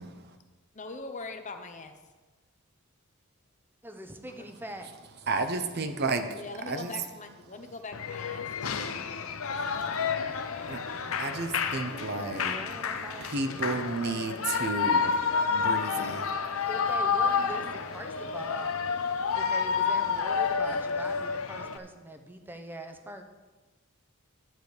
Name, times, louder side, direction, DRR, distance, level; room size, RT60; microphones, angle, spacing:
voice 1, 0.0-0.4 5.3-6.4 6.7-7.0 9.6-12.6 13.2-16.7 19.2-19.3, right 3 dB, 50° right, 7 dB, 0.8 m, -33 dB
voice 2, 0.8-1.9 4.4-4.5 6.3-11.6, left 3 dB, 35° left, 6 dB, 0.8 m, -44 dB
voice 3, 3.8-4.9 11.7-13.9 16.6-18.8 19.3-23.2, right 1 dB, 10° right, 6 dB, 0.8 m, -43 dB
Shout / Cheering, 7.9-21.8, left 5 dB, 75° left, 0.7 m, -30 dB
11.0 x 5.1 x 7.9 m, 1.2 s
head